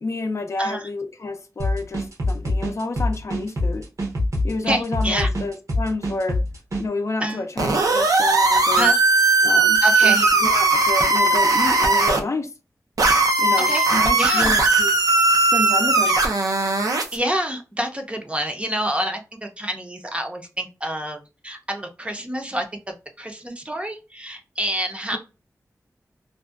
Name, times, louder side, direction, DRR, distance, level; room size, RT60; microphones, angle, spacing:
voice 1, 0.0-3.9 4.4-6.4 6.8-8.9 9.4-12.5 13.4-15.0 15.5-16.2, left 3 dB, 55° left, 0.4 m, -29 dB
sound 1, 1.6-6.8, left 1 dB, 60° right, 0.8 m, -24 dB
voice 2, 4.6-5.3 7.2-7.4 8.8-9.0 9.8-10.3 13.7-13.9 14.1-14.6 16.0-16.1 17.1-22.7 23.2-25.2, right 1 dB, 20° right, 0.5 m, -27 dB
sound 2, 7.6-12.2 13.0-17.2, right 3 dB, 80° right, 0.5 m, -18 dB
2.5 x 2.2 x 2.2 m
wide cardioid pair, 90°, 6 cm